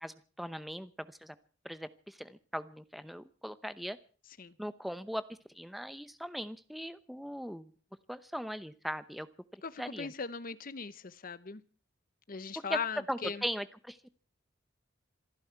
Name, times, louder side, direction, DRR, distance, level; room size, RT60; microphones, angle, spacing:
voice 1, 0.0-1.3 1.6-4.0 4.6-7.7 8.1-9.3 9.5-10.1 12.7-12.8 13.1-14.1, equal, ahead, 0.8 m, -39 dB
voice 2, 9.6-11.6 12.3-13.4, left 5 dB, 45° left, 0.8 m, -39 dB
26.5 x 11.5 x 4.6 m
head